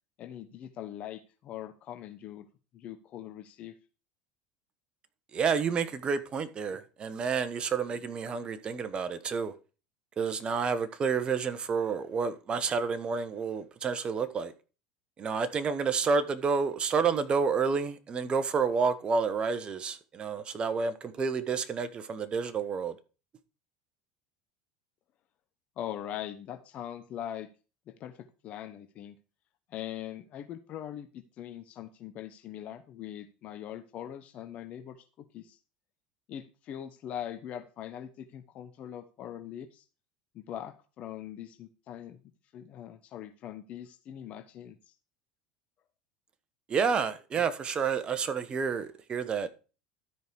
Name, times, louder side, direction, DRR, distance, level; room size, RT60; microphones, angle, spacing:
voice 1, 0.2-2.5 2.7-3.7 25.8-27.5 27.9-28.2 28.4-29.1 29.7-35.0 35.3-35.6 36.3-39.8 40.3-42.2 42.5-44.9, left 11 dB, 50° left, 1.0 m, -41 dB
voice 2, 5.3-9.5 10.2-14.5 15.2-22.9 46.7-49.5, right 5 dB, 35° right, 1.3 m, -29 dB
12.5 x 5.1 x 4.7 m
hypercardioid pair, 80°, 3 cm